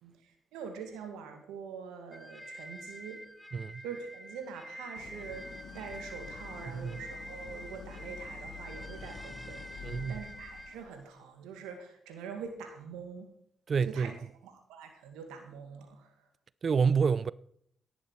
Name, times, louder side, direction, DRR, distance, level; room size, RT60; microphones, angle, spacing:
voice 1, 0.0-3.2 3.8-13.3 13.8-14.2 14.4-16.1, right 6 dB, 80° right, 1.9 m, -44 dB
sound 1, 2.1-10.8, equal, 5° left, 1.5 m, -47 dB
voice 2, 3.5-3.8 6.7-6.9 9.8-10.2 13.7-14.1 16.6-17.3, right 5 dB, 50° right, 0.5 m, -28 dB
Idling, 4.9-11.0, left 6 dB, 70° left, 1.4 m, -48 dB
13.0 x 11.0 x 4.6 m
hypercardioid pair, 45°, 0 cm